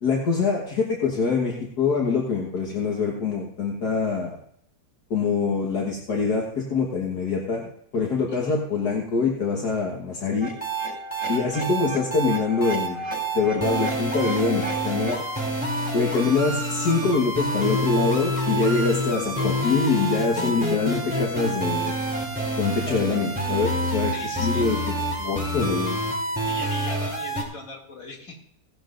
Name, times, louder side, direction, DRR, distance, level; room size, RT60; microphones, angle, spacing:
voice 1, 0.0-4.4 5.1-10.5 11.3-13.0 13.3-15.2 15.9-22.0 22.6-24.8 25.2-26.0, left 4 dB, 70° left, -2 dB, 2.0 m, -24 dB
sound 1, 10.4-15.4, equal, 75° right, 4.7 m, -35 dB
sound 2, 10.6-27.4, right 1 dB, 5° right, 3.1 m, -27 dB
voice 2, 15.8-16.1 24.1-24.7 26.5-28.4, left 2 dB, 50° left, -2 dB, 3.0 m, -40 dB
17.5 x 12.0 x 2.6 m, 0.70 s
omnidirectional pair, 1.8 m